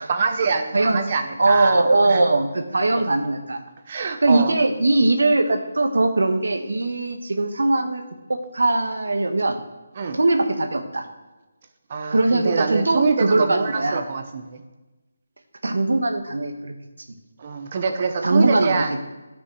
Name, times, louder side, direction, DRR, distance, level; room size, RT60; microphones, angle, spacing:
voice 1, 0.0-2.2 2.9-3.0 3.9-4.6 10.0-10.2 11.9-14.6 17.4-19.0, right 5 dB, 30° right, 7 dB, 0.9 m, -25 dB
voice 2, 1.4-3.6 4.2-8.0 8.3-9.6 10.1-11.1 12.1-14.0 15.6-16.7 18.2-18.8, right 2 dB, 85° right, 6 dB, 1.5 m, -20 dB
11.0 x 6.2 x 6.3 m, 1.1 s
hypercardioid pair, 175°, 0 cm